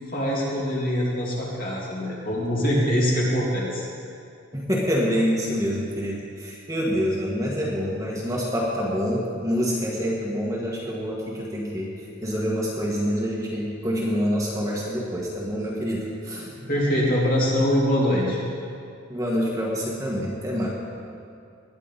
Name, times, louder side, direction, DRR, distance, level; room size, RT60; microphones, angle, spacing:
voice 1, 0.1-3.9 16.6-18.4, equal, 45° left, -5 dB, 3.3 m, -23 dB
voice 2, 4.5-11.9 12.2-16.5 19.1-20.7, equal, 15° right, -4 dB, 1.7 m, -26 dB
20.0 x 10.5 x 4.2 m, 2.4 s
head